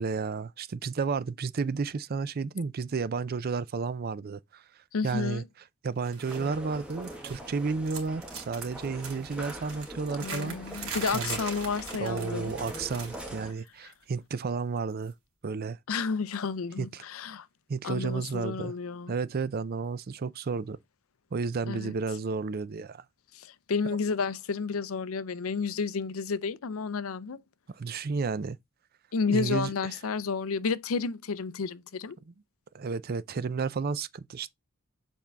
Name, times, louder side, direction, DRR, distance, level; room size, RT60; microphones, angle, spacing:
voice 1, 0.0-4.6 5.0-5.4 5.8-11.4 12.0-15.1 15.4-15.8 16.8-17.0 17.7-18.7 19.1-20.8 21.3-23.0 27.7-28.6 29.3-29.7 32.3-32.4 32.7-34.5, right 4 dB, 45° right, 0.4 m, -32 dB
voice 2, 4.9-5.4 10.2-12.5 13.8-13.9 15.9-17.5 17.8-19.1 21.7-21.9 23.3-27.4 29.1-32.2, left 5 dB, 75° left, 0.5 m, -31 dB
sound 1, 6.0-6.5 6.7-7.6 7.8-13.4 13.7-13.9 15.0-15.1, right 5 dB, 75° right, 2.7 m, -41 dB
sound 2, 6.3-13.5, equal, 5° right, 1.5 m, -43 dB
7.2 x 4.4 x 3.4 m
head